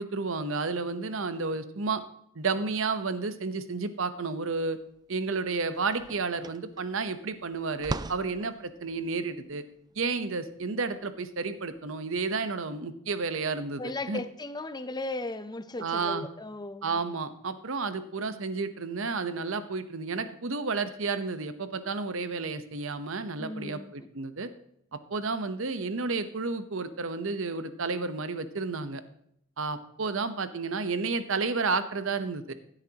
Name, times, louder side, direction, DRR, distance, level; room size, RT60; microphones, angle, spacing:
voice 1, 0.0-2.0 2.3-4.8 5.1-9.6 10.0-13.8 14.1-14.2 15.8-16.3 16.8-24.5 24.9-29.0 29.6-32.5, right 4 dB, 65° right, 0.9 m, -31 dB
sound 1, 4.9-5.0 5.3-11.8, right 3 dB, 20° right, 0.3 m, -41 dB
voice 2, 13.8-17.0 23.4-24.1, left 2 dB, 20° left, 0.7 m, -36 dB
16.0 x 9.1 x 2.9 m
head